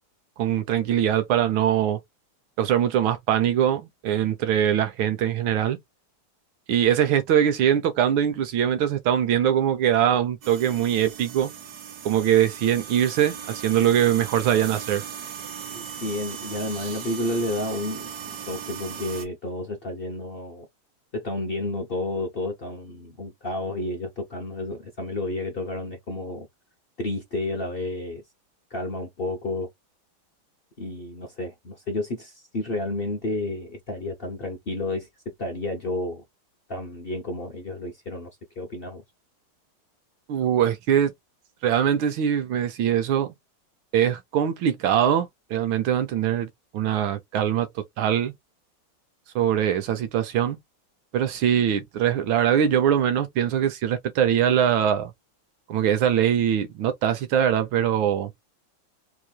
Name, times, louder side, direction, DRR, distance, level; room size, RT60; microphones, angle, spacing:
voice 1, 0.4-2.0 2.6-5.8 6.7-11.5 12.0-15.0 40.3-41.1 41.6-43.3 43.9-46.5 46.7-47.7 48.0-48.3 49.3-50.6 51.1-55.1 55.7-58.3, right 10 dB, 80° right, 1.5 m, -22 dB
sound 1, 10.4-19.2, right 8 dB, 60° right, 1.2 m, -38 dB
voice 2, 15.7-20.7 21.1-26.5 27.0-28.2 28.7-29.7 30.8-36.2 36.7-38.3 38.6-39.0, left 2 dB, 65° left, 0.5 m, -31 dB
4.3 x 3.0 x 2.3 m
omnidirectional pair, 2.2 m